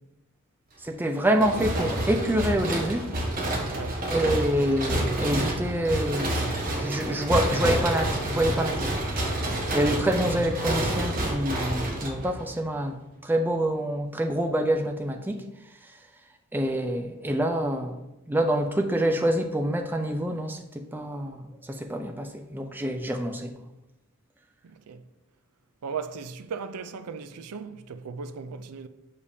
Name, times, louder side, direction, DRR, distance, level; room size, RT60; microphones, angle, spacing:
voice 1, 0.8-3.1 4.1-6.4 6.8-8.9 9.7-13.0 13.2-15.4 16.5-18.0 18.3-23.5, right 1 dB, 10° right, 0.4 m, -26 dB
sound 1, 1.4-12.6, right 1 dB, 40° right, 1.1 m, -28 dB
voice 2, 3.7-4.1 24.6-25.0 25.8-28.9, right 5 dB, 90° right, 0.4 m, -37 dB
6.8 x 5.1 x 2.7 m
head